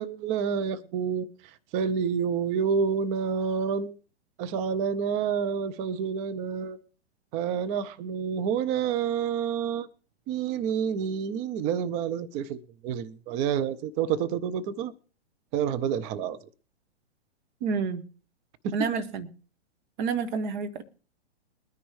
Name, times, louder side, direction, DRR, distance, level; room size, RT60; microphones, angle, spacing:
voice 1, 0.0-3.9 4.4-6.8 7.3-9.9 10.3-14.9 15.5-16.4 18.6-18.9, right 7 dB, 20° right, 0.5 m, -28 dB
voice 2, 17.6-18.0 18.7-19.3 20.0-20.8, right 5 dB, 45° right, 1.7 m, -29 dB
22.5 x 10.0 x 3.2 m
figure-of-eight pair, 115°, 34 cm